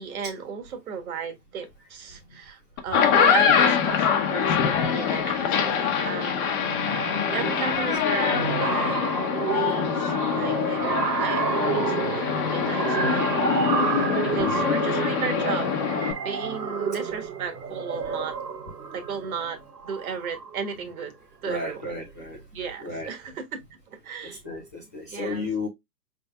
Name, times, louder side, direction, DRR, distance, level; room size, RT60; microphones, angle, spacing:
voice 1, 0.0-15.7 16.2-18.4 18.9-21.1 21.4-21.9 22.5-23.4 23.9-24.4 25.1-25.5, right 6 dB, 60° right, 1.4 m, -35 dB
sound 1, 2.8-16.1, left 7 dB, 30° left, 1.0 m, -24 dB
sound 2, 4.8-5.0 5.3-5.5 5.8-20.7, right 5 dB, 85° right, 1.2 m, -30 dB
voice 2, 7.4-7.9 14.3-14.7 21.4-22.5 22.8-23.1 24.2-25.7, left 3 dB, 10° left, 0.4 m, -33 dB
5.2 x 3.4 x 2.2 m
hypercardioid pair, 120°, 49 cm